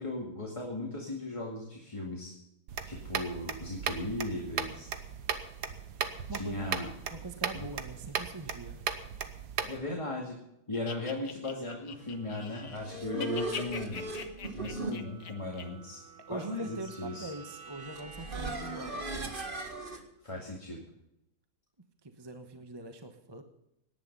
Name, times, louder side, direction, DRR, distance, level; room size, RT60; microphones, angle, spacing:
voice 1, 0.0-2.3 2.8-4.9 6.3-6.9 7.5-7.7 9.6-10.4 10.7-14.1 14.5-16.0 16.3-17.3 20.2-20.8, left 2 dB, 20° left, -2 dB, 2.2 m, -37 dB
sound 1, 2.7-9.8, right 7 dB, 80° right, 1.7 m, -37 dB
voice 2, 6.0-6.7 7.1-8.8 16.3-19.2 22.0-23.4, right 2 dB, 20° right, 6 dB, 1.0 m, -43 dB
sound 2, 10.7-12.8 13.1-15.6, left 6 dB, 90° left, 1.8 m, -42 dB
sound 3, 12.5-20.0, right 2 dB, 35° right, 1.9 m, -39 dB
18.5 x 10.5 x 5.5 m, 0.84 s
omnidirectional pair, 1.7 m